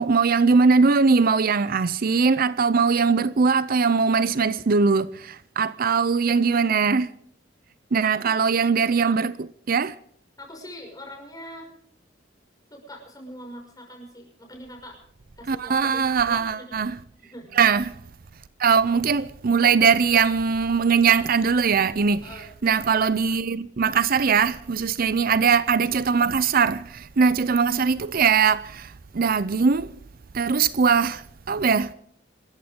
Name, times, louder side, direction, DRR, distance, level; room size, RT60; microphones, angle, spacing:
voice 1, 0.0-7.1 7.9-10.0 15.5-17.0 17.6-17.9 18.6-22.3 22.6-29.9 30.3-31.9, right 5 dB, 50° right, 0.5 m, -21 dB
voice 2, 10.4-11.7 12.7-15.0 15.4-16.8 17.2-17.6 22.2-22.5, equal, 20° left, 6.0 m, -42 dB
26.5 x 14.0 x 3.7 m
head